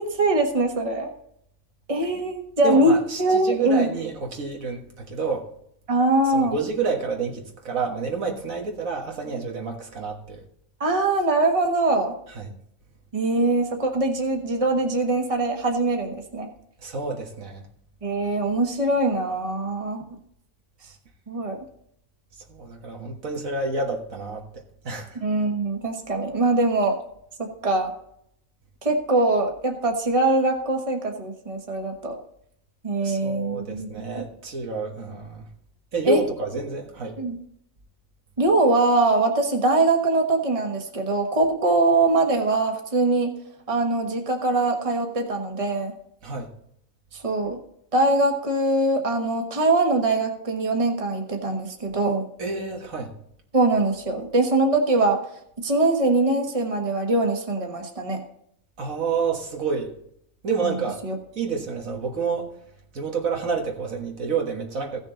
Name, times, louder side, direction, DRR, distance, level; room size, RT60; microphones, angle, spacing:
voice 1, 0.1-1.1 1.9-3.9 5.9-6.6 10.8-12.1 13.1-16.5 18.0-20.0 21.3-21.6 25.1-27.0 27.6-27.9 28.8-32.2 32.8-34.0 36.0-36.2 37.2-37.4 38.4-43.3 43.7-45.9 47.1-47.6 47.9-52.2 53.5-55.2 55.6-58.2 61.0-61.2, right 2 dB, 25° right, 3 dB, 1.4 m, -22 dB
voice 2, 2.6-5.5 6.2-10.4 12.3-12.5 16.8-17.6 22.5-25.2 33.0-35.4 35.9-37.2 46.2-46.5 52.4-53.1 58.8-59.9 60.4-61.0 61.3-62.5 62.9-65.0, right 4 dB, 75° right, 1 dB, 2.0 m, -29 dB
16.0 x 6.4 x 3.9 m, 0.71 s
omnidirectional pair, 1.4 m